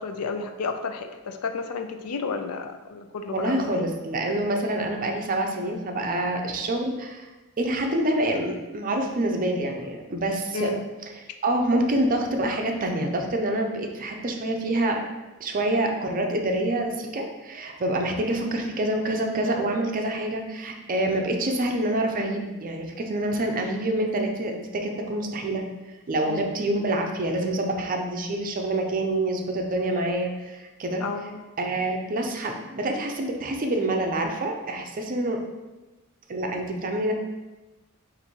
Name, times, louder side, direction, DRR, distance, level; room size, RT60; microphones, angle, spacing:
voice 1, 0.0-3.9 10.5-10.9 26.3-26.5 31.0-31.4, left 4 dB, 80° left, 7 dB, 0.4 m, -32 dB
voice 2, 3.3-7.3 7.6-10.7 11.4-15.0 15.4-25.6 26.1-31.0 31.6-35.4 36.3-37.1, right 1 dB, 40° right, 3 dB, 0.5 m, -26 dB
4.2 x 2.6 x 4.4 m, 1.1 s
head